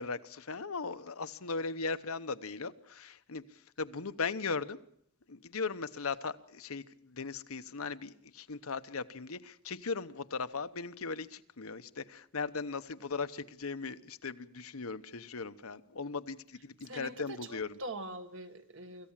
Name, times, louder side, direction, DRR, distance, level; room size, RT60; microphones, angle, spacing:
voice 1, 0.0-4.8 5.3-17.7, left 4 dB, 80° left, 11 dB, 1.0 m, -38 dB
voice 2, 16.8-19.1, right 2 dB, 60° right, 8 dB, 1.8 m, -43 dB
26.0 x 15.0 x 7.5 m, 0.71 s
head